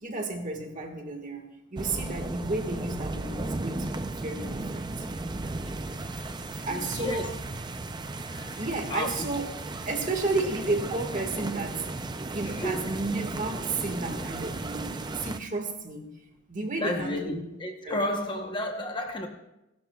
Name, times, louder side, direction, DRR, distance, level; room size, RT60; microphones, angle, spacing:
voice 1, 0.0-3.9 4.2-5.1 6.7-7.4 8.5-9.5 9.9-11.9 12.3-16.1 16.5-17.4 17.8-18.0, right 3 dB, 35° right, 4 dB, 1.7 m, -32 dB
sound 1, 1.8-15.4, right 2 dB, 20° right, 0.5 m, -35 dB
voice 2, 6.6-7.3 8.0-9.3 12.4-12.9 16.8-19.3, left 1 dB, 20° left, 3 dB, 0.9 m, -33 dB
30.0 x 11.5 x 2.3 m, 0.92 s
head